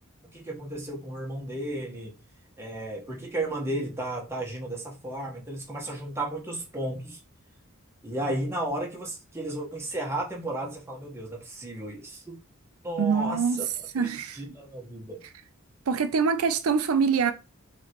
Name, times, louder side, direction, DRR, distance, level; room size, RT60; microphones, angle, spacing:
voice 1, 0.2-2.1 2.6-7.2 8.0-12.4 12.8-13.7 14.0-15.3, right 1 dB, 10° right, 1.2 m, -34 dB
voice 2, 13.0-13.7 13.9-14.4 15.9-17.3, right 5 dB, 75° right, 0.5 m, -24 dB
5.6 x 3.0 x 3.0 m
head